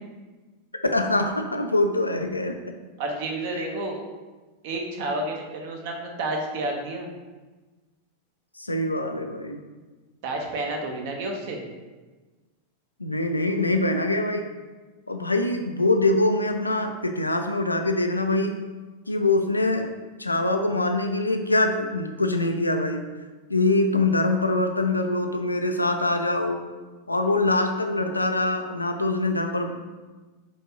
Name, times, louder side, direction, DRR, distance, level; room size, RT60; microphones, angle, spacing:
voice 1, 0.9-2.6 3.6-3.7 8.6-9.6 13.0-14.5 15.1-18.5 19.1-19.9 20.2-23.0 23.5-26.6 27.1-29.7, left 2 dB, 90° left, 5 dB, 0.3 m, -24 dB
voice 2, 3.0-4.0 4.6-7.1 10.2-11.6, right 2 dB, 55° right, 1 dB, 0.8 m, -30 dB
4.5 x 2.7 x 2.8 m, 1.3 s
figure-of-eight pair, 90°, 0 cm